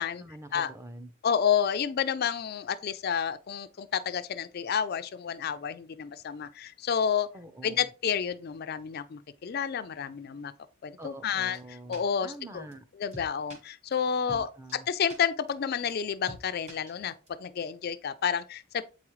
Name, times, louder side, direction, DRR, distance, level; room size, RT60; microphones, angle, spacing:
voice 1, 0.2-1.1 7.3-7.9 11.0-12.8 14.3-14.9, right 1 dB, 10° right, 0.5 m, -46 dB
voice 2, 1.2-7.3 7.6-10.5 10.8-11.6 11.9-12.6 13.0-18.8, left 7 dB, 45° left, 0.3 m, -30 dB
sound 1, 11.5-11.6 11.9-12.0 12.3-12.4 12.7-12.8 13.1-13.6 13.9-14.0 14.3-14.4 14.7-14.8 15.1-15.2 15.5-15.6 15.9-16.0 16.3-16.4 16.7-17.3, equal, 30° right, 1.3 m, -45 dB
7.8 x 4.8 x 3.0 m
head